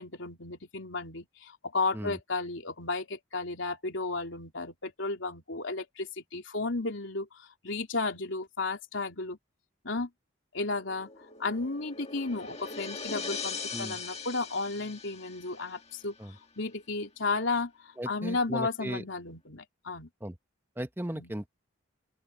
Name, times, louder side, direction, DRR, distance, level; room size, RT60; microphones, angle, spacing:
voice 1, 0.0-7.3 7.6-9.4 9.8-10.1 10.5-11.1 11.4-16.1 16.6-20.1 21.1-21.3, left 3 dB, 75° left, 3.3 m, -33 dB
sound 1, 10.7-15.9, left 4 dB, 30° left, 1.7 m, -40 dB
voice 2, 18.0-19.0 20.2-20.4 20.8-21.5, right 1 dB, 10° right, 0.9 m, -37 dB
open air
head